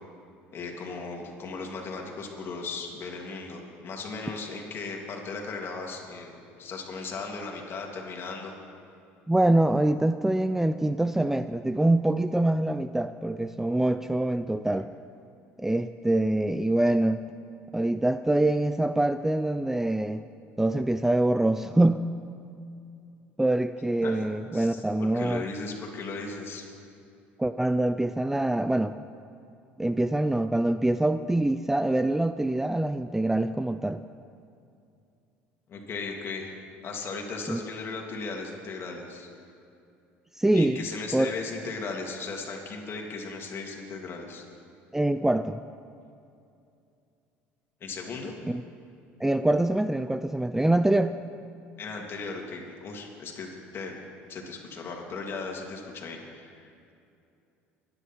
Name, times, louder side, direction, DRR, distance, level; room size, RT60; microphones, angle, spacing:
voice 1, 0.5-8.5 24.0-24.2 24.5-26.7 35.7-36.5 36.8-39.3 40.5-44.4 47.8-48.3 51.8-54.0 54.3-56.9, left 4 dB, 45° left, 0 dB, 3.1 m, -37 dB
voice 2, 9.3-14.9 15.6-17.2 17.7-20.3 20.6-22.0 23.4-25.4 27.4-29.0 29.8-34.0 37.5-37.6 40.4-40.8 41.1-41.3 44.9-45.6 48.5-48.6 49.2-51.2, right 1 dB, 5° right, 11 dB, 0.4 m, -25 dB
25.0 x 10.5 x 4.7 m, 2.6 s
supercardioid pair, 85°, 5 cm